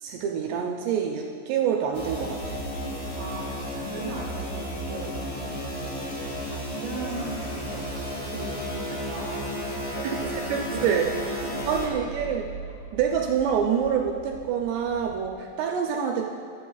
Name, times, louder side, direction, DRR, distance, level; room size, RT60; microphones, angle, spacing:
voice 1, 0.0-2.7 10.5-11.1 11.7-12.5 12.9-16.3, right 7 dB, 80° right, 1 dB, 2.6 m, -26 dB
sound 1, 1.9-11.9, equal, 60° left, 1.2 m, -33 dB
sound 2, 2.2-15.3, right 3 dB, 35° left, 2.1 m, -46 dB
voice 2, 3.1-8.8 9.1-12.4 12.9-13.0, right 3 dB, 60° right, -3 dB, 1.8 m, -39 dB
Bass guitar, 3.8-10.1, left 4 dB, 80° left, 2.2 m, -53 dB
16.0 x 12.0 x 2.4 m, 2.5 s
omnidirectional pair, 5.4 m